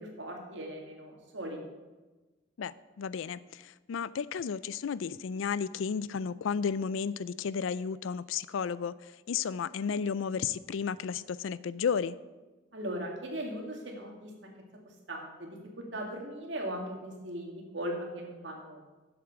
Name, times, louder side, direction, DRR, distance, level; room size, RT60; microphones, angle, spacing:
voice 1, 0.0-1.6 12.7-14.5 15.1-18.8, right 1 dB, 70° right, 1 dB, 2.1 m, -39 dB
voice 2, 2.6-12.2, left 6 dB, 85° left, 18 dB, 0.4 m, -33 dB
7.9 x 7.5 x 7.0 m, 1.2 s
head